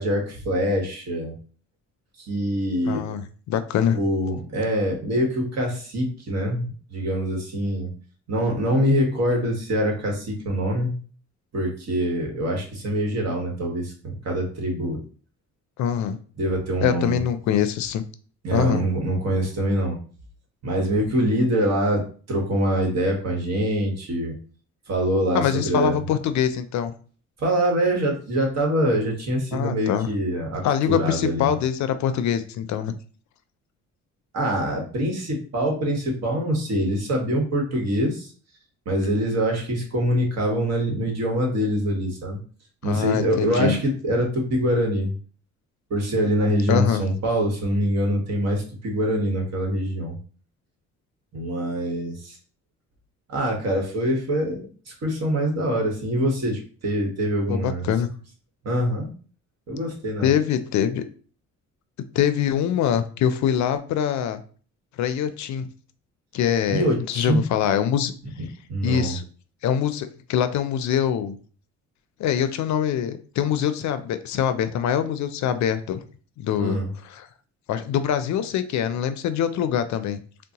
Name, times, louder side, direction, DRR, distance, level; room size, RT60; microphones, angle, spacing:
voice 1, 0.0-1.4 2.2-3.2 3.9-7.9 8.3-10.9 11.5-15.0 16.4-17.2 18.4-20.0 20.6-24.4 24.9-26.0 27.4-31.5 34.3-38.3 38.8-42.4 42.8-45.1 45.9-50.2 51.3-52.4 53.3-54.6 54.9-57.9 58.6-59.1 59.7-60.3 66.7-67.5 68.4-69.1 76.6-76.9, equal, 60° right, 1 dB, 1.2 m, -24 dB
voice 2, 2.9-4.0 15.8-16.2 16.8-18.0 18.5-18.8 25.3-26.9 29.5-30.1 30.6-33.0 42.8-43.8 46.7-47.1 57.5-58.1 60.2-61.0 62.1-64.4 65.0-65.7 66.3-68.1 68.8-69.2 69.6-71.4 72.2-76.0 76.4-76.8 77.1-77.3 77.7-80.2, left 9 dB, 70° left, 11 dB, 0.4 m, -24 dB
3.7 x 2.1 x 2.8 m, 0.41 s
cardioid pair, 90°, 30 cm